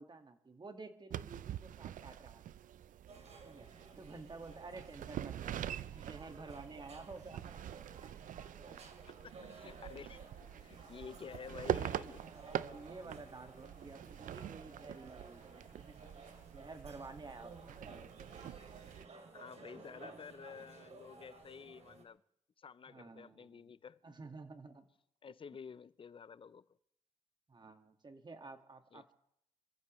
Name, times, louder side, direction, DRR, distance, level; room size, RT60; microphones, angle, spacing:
voice 1, 0.0-2.5 3.4-3.7 4.0-5.7 5.9-7.6 12.0-16.1 16.5-18.1 22.9-23.6 24.0-24.8 27.5-29.1, right 3 dB, 35° right, 1.8 m, -51 dB
sound 1, 1.1-19.1, right 10 dB, 80° right, 0.5 m, -45 dB
sound 2, 3.1-22.0, right 4 dB, 55° right, 2.7 m, -56 dB
voice 2, 9.1-12.2 19.3-22.2 22.6-24.0 25.2-26.7 28.9-29.1, left 6 dB, 40° left, 0.5 m, -51 dB
Applause, 9.3-17.2, left 6 dB, 90° left, 4.7 m, -71 dB
27.0 x 15.0 x 3.1 m
cardioid pair, 90°, 13 cm